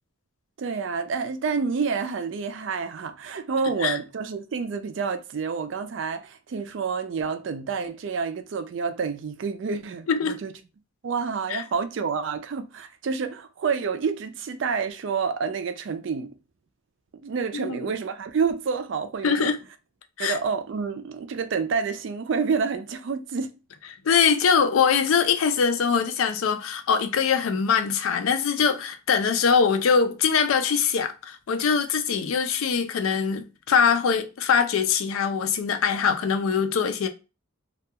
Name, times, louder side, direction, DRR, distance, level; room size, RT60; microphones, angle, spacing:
voice 1, 0.6-10.5 11.0-16.3 17.2-19.5 20.2-23.5, right 5 dB, 60° right, 0.4 m, -28 dB
voice 2, 10.1-10.4 11.5-11.6 17.5-17.8 19.2-19.6 20.2-20.4 24.0-37.1, left 6 dB, 80° left, 0.4 m, -22 dB
2.3 x 2.2 x 2.7 m
head